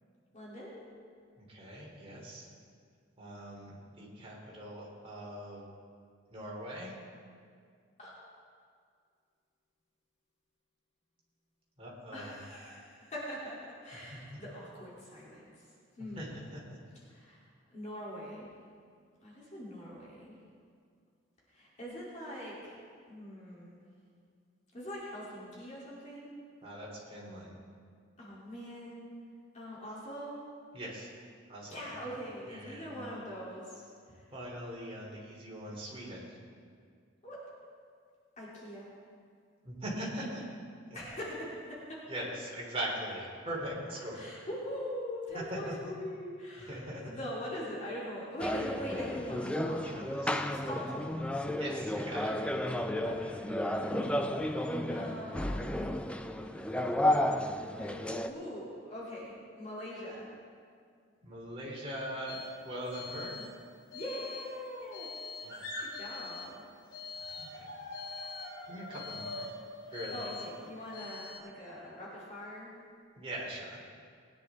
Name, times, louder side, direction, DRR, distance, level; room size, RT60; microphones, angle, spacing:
voice 1, 0.3-0.8 8.0-8.1 12.1-15.7 16.0-16.6 16.9-18.5 19.2-20.4 21.5-22.8 23.1-23.8 24.7-26.3 28.2-29.0 29.5-30.4 31.7-34.3 37.2-37.4 38.4-38.9 40.9-42.1 44.1-50.0 50.5-51.3 53.0-54.1 54.5-55.8 56.8-60.3 63.9-65.1 65.8-66.7 70.1-72.8, equal, 40° left, -7 dB, 2.9 m, -43 dB
voice 2, 1.4-2.5 3.2-5.7 6.3-6.9 11.8-12.3 14.1-14.2 16.2-16.3 16.5-16.6 26.6-27.6 30.7-31.1 31.5-31.9 32.5-33.1 34.3-36.3 39.6-40.4 42.1-44.2 45.5-45.7 46.7-47.0 49.8-50.4 51.6-52.3 61.2-63.4 65.4-65.7 67.4-67.7 68.7-69.5 69.9-70.2 73.2-73.8, right 1 dB, 30° right, -4 dB, 3.1 m, -41 dB
sound 1, 48.4-58.3, left 1 dB, 5° left, 0.4 m, -32 dB
sound 2, 62.3-62.6 62.8-63.6 63.9-66.6 66.9-71.4, left 3 dB, 85° left, 4.0 m, -43 dB
20.0 x 10.0 x 3.6 m, 2.2 s
head